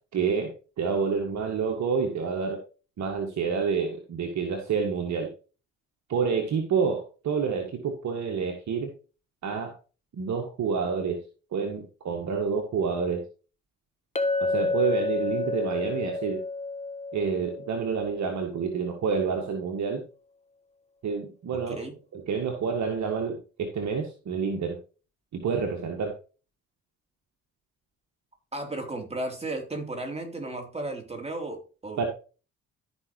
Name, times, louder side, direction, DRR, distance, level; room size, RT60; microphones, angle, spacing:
voice 1, 0.1-0.5 0.8-2.6 3.0-5.3 6.1-8.9 9.4-9.7 10.1-11.2 11.5-13.2 14.4-16.4 17.1-20.0 21.0-21.8 22.1-24.8 25.3-26.1 32.0-32.1, right 5 dB, 55° right, 3 dB, 1.7 m, -28 dB
Chink clink, 14.2-18.6, left 3 dB, 20° left, 1.4 m, -30 dB
voice 2, 21.5-22.0 28.5-32.1, right 2 dB, 20° right, 2 dB, 3.4 m, -34 dB
13.5 x 5.6 x 3.1 m, 0.35 s
hypercardioid pair, 45°, 34 cm